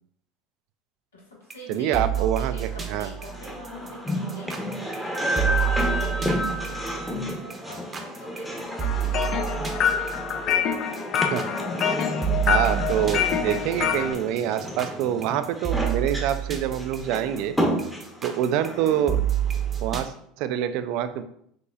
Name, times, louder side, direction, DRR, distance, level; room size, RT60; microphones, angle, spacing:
voice 1, 1.1-6.4 7.6-10.8 18.1-18.5, left 2 dB, 85° left, -5 dB, 1.6 m, -45 dB
sound 1, 1.5-20.0, right 10 dB, 25° right, 0.7 m, -29 dB
voice 2, 1.7-3.1 11.3-11.5 12.5-17.5 18.2-19.2 19.8-21.2, right 10 dB, 60° right, 10 dB, 0.3 m, -26 dB
sound 2, 2.4-19.9, equal, 5° left, 0.9 m, -31 dB
sound 3, 8.8-14.1, left 8 dB, 50° left, 0.4 m, -26 dB
5.6 x 3.0 x 2.4 m, 0.69 s
hypercardioid pair, 75°, 0 cm